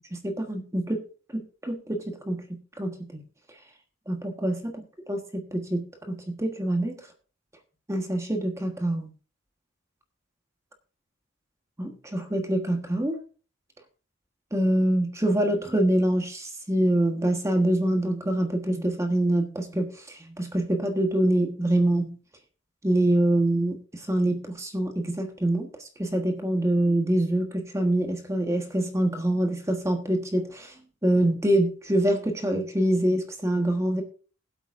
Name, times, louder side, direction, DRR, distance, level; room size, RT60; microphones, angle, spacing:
voice 1, 0.1-1.0 1.3-2.4 2.8-3.2 4.1-4.7 5.1-7.0 7.9-9.1 11.8-13.2 14.5-22.2 22.8-30.7 31.0-34.0, right 1 dB, 15° right, 4 dB, 1.3 m, -25 dB
21.0 x 8.1 x 2.6 m, 0.38 s
head